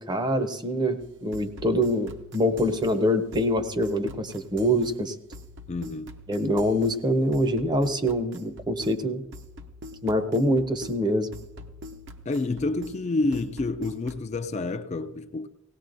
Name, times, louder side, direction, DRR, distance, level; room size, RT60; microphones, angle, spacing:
voice 1, 0.0-5.1 6.3-9.2 10.0-11.3, equal, 20° right, 0.6 m, -25 dB
sound 1, 1.0-14.3, left 1 dB, 60° right, 0.8 m, -45 dB
voice 2, 5.7-6.1 12.3-15.5, left 2 dB, 30° left, 0.4 m, -28 dB
18.0 x 17.5 x 2.6 m
head